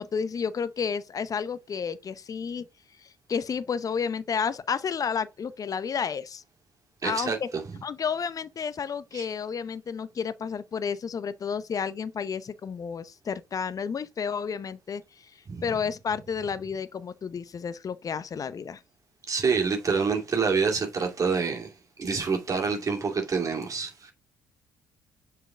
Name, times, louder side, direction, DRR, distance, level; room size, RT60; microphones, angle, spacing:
voice 1, 0.0-2.7 3.0-6.4 7.0-7.5 7.8-15.3 15.6-18.8, left 6 dB, 40° left, 0.8 m, -31 dB
voice 2, 7.0-7.4 9.1-9.2 15.5-15.6 19.3-21.7 22.0-24.1, right 5 dB, 40° right, 2.4 m, -27 dB
6.9 x 4.7 x 3.7 m
hypercardioid pair, 55°, 9 cm